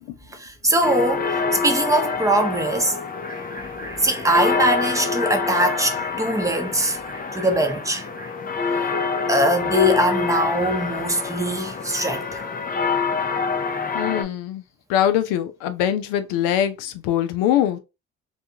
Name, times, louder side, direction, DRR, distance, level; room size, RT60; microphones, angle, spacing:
voice 1, 0.3-8.3 9.3-12.5, right 1 dB, 10° right, 0.7 m, -22 dB
sound 1, 0.8-14.2, left 5 dB, 30° left, 0.5 m, -26 dB
voice 2, 13.9-14.6 14.9-17.8, left 11 dB, 80° left, 0.5 m, -22 dB
2.4 x 2.3 x 2.7 m
supercardioid pair, 60°, 32 cm